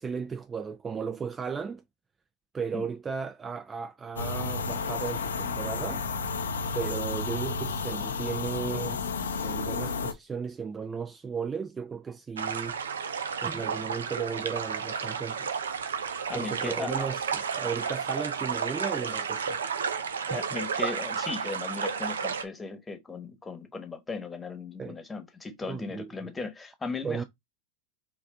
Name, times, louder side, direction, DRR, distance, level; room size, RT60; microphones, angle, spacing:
voice 1, 0.0-1.8 2.5-6.1 6.7-9.0 9.4-12.8 13.4-15.5 16.3-19.6 20.3-20.4 24.8-25.0 25.6-26.3 27.0-27.2, right 6 dB, 20° right, 0.4 m, -35 dB
sound 1, 4.2-10.1, left 4 dB, 85° left, 0.6 m, -32 dB
sound 2, 12.4-22.4, right 6 dB, 85° right, 0.6 m, -32 dB
voice 2, 16.3-17.1 20.3-27.2, left 3 dB, 15° left, 1.1 m, -37 dB
4.6 x 2.4 x 3.6 m
hypercardioid pair, 100°, 0 cm